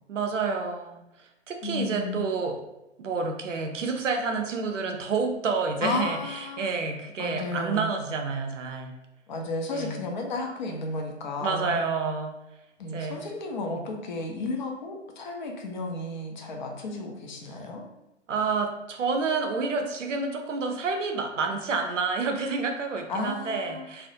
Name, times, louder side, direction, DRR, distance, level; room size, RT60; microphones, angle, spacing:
voice 1, 0.1-1.0 1.5-2.6 3.0-8.9 9.7-10.0 11.4-12.3 12.9-13.3 18.3-24.1, right 4 dB, 80° right, 4 dB, 0.5 m, -29 dB
voice 2, 1.6-2.2 5.8-6.7 7.2-7.9 9.3-11.8 12.8-17.8 23.1-23.9, left 2 dB, 40° left, 2 dB, 0.4 m, -33 dB
2.3 x 2.0 x 2.7 m, 0.91 s
figure-of-eight pair, 115°, 37 cm